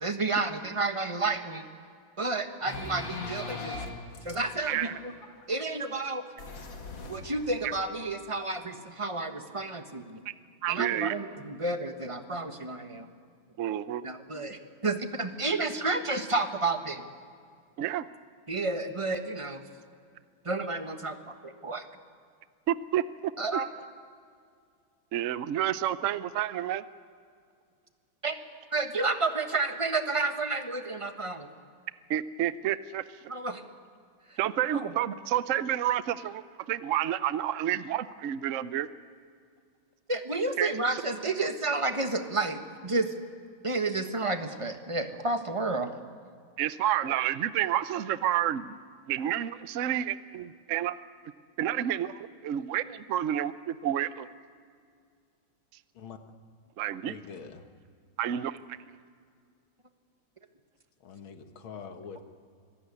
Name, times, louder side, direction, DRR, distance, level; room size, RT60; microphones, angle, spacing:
voice 1, 0.0-1.6 2.2-3.8 4.2-4.9 5.5-6.2 7.1-10.2 10.7-13.1 14.0-17.1 18.5-19.6 20.4-21.8 23.4-23.7 28.2-28.3 28.7-31.5 33.3-33.6 34.3-34.4 34.7-34.9 40.1-43.1 43.6-45.9, right 3 dB, 20° right, 7 dB, 1.1 m, -31 dB
sound 1, 2.7-5.8 6.3-7.8, left 3 dB, 70° left, 2.9 m, -40 dB
voice 2, 10.6-11.1 13.6-14.0 17.8-18.1 22.7-23.3 25.1-26.8 32.1-33.0 34.4-36.4 36.7-38.9 40.6-40.7 46.6-48.8 49.1-51.0 51.6-54.3 56.8-57.1 58.2-58.8, right 11 dB, 65° right, 14 dB, 0.7 m, -29 dB
voice 3, 57.1-57.6 61.0-62.2, left 6 dB, 90° left, 7 dB, 2.3 m, -44 dB
25.0 x 15.5 x 9.7 m, 2.2 s
omnidirectional pair, 2.2 m